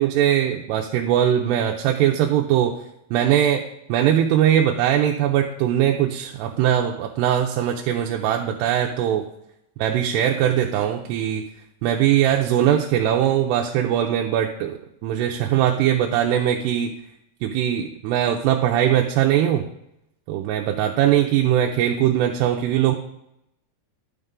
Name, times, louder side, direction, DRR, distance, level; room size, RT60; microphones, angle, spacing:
voice 1, 0.0-2.7 3.1-3.6 3.9-9.3 9.8-11.4 11.8-16.9 17.4-19.7 20.3-23.0, right 10 dB, 85° right, 1 dB, 2.7 m, -21 dB
11.5 x 6.6 x 3.7 m, 0.80 s
omnidirectional pair, 4.8 m